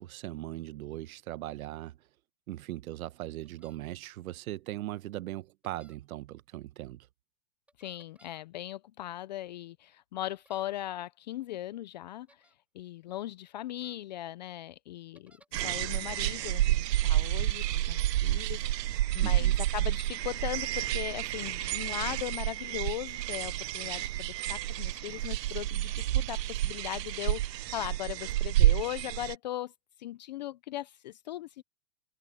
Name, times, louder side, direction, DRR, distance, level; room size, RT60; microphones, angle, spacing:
voice 1, 0.0-2.0 2.5-7.1 19.2-19.6, right 15 dB, 60° right, 1.3 m, -39 dB
sound 1, 3.4-3.8 5.6-6.0 7.7-8.4 10.3-10.7 12.3-12.5 13.7-13.9 15.1-15.7, right 1 dB, 5° right, 6.9 m, -62 dB
voice 2, 7.8-12.4 12.7-29.7 30.0-31.6, left 13 dB, 30° left, 0.4 m, -39 dB
sound 2, 15.5-29.3, right 14 dB, 85° right, 0.6 m, -29 dB
hypercardioid pair, 135°, 48 cm